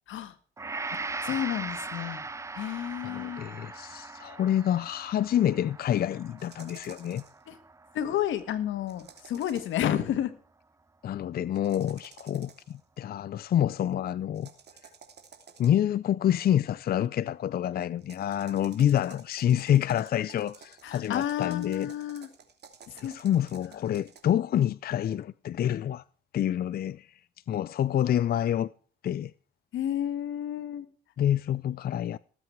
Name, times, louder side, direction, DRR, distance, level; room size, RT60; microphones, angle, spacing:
Gong, 0.6-8.9 9.3-9.5, right 3 dB, 15° right, 0.5 m, -40 dB
voice 1, 1.2-2.2 2.5-3.4 7.5-7.6 7.9-10.3 20.8-22.3 22.9-23.1 29.7-30.8, left 11 dB, 80° left, 1.6 m, -31 dB
voice 2, 3.0-7.2 11.0-14.5 15.6-21.9 23.0-26.0 26.3-27.1 27.5-28.7 29.0-29.3 31.2-32.2, left 10 dB, 50° left, 0.5 m, -27 dB
sound 1, 6.4-7.4 8.9-9.9 11.5-12.8 14.3-15.9 18.0-24.2, right 6 dB, 55° right, 2.9 m, -52 dB
19.0 x 8.0 x 4.6 m
cardioid pair, 90°, 20 cm